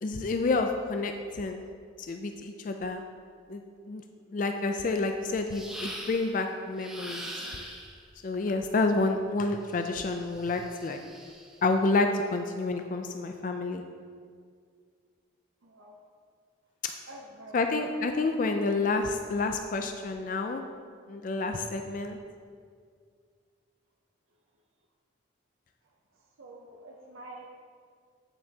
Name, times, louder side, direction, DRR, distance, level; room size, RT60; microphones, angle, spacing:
voice 1, 0.0-1.6 2.1-3.0 3.5-4.0 4.3-7.3 8.2-11.0 11.6-13.8 16.8-16.9 17.5-20.6 21.1-22.2, left 3 dB, 40° left, 5 dB, 0.3 m, -29 dB
sound 1, 5.5-6.4 6.8-8.0 9.7-11.6, right 1 dB, 5° right, 0.6 m, -42 dB
voice 2, 15.6-16.0 17.1-17.6 25.8-27.5, right 1 dB, 85° right, -1 dB, 0.7 m, -48 dB
9.3 x 6.7 x 2.8 m, 2.1 s
head